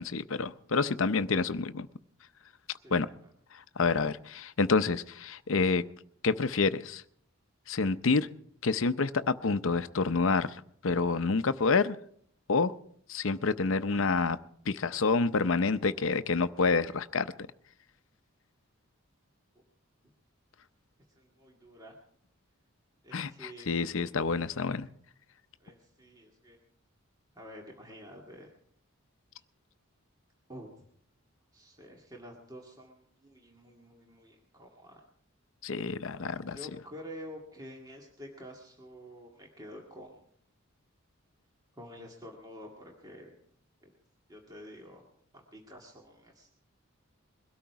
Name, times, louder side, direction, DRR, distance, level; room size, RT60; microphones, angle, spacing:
voice 1, 0.0-1.9 2.9-3.1 3.5-5.8 6.2-7.0 7.7-8.3 8.6-12.0 12.5-12.7 13.1-14.4 14.7-17.3 23.1-24.9 35.6-36.6, left 4 dB, 70° left, 0.7 m, -28 dB
voice 2, 21.1-21.9 23.0-23.7 25.6-26.6 27.3-28.5 30.5-30.9 31.5-35.0 36.1-36.2 36.5-40.3 41.8-43.4 43.8-43.9 44.3-45.0 45.3-46.5, equal, 20° right, 2.0 m, -48 dB
22.0 x 13.0 x 4.7 m
head